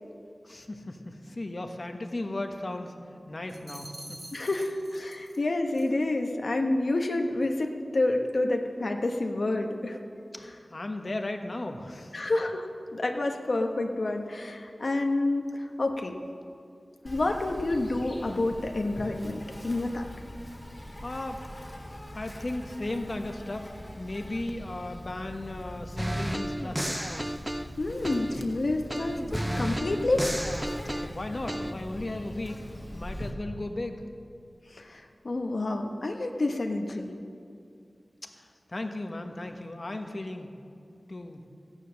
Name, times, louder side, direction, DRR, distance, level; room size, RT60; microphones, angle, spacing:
voice 1, 0.4-2.9 3.3-4.5 10.3-12.2 21.0-21.4 22.1-23.7 24.0-27.2 30.8-32.6 32.9-34.1 38.4-40.5 41.1-41.4, left 2 dB, 50° left, 5 dB, 1.2 m, -36 dB
sound 1, 3.5-5.4 5.7-6.0, right 1 dB, 35° right, 2.6 m, -46 dB
voice 2, 4.3-10.0 12.1-16.1 17.0-20.0 27.8-30.3 34.7-37.1, left 2 dB, 65° left, 3 dB, 1.0 m, -29 dB
Insect, 17.1-33.3, equal, 25° left, 1.7 m, -42 dB
sound 2, 26.0-28.5 28.9-31.7, equal, 10° right, 0.5 m, -32 dB
15.0 x 10.0 x 6.2 m, 2.4 s
wide cardioid pair, 65°, 0 cm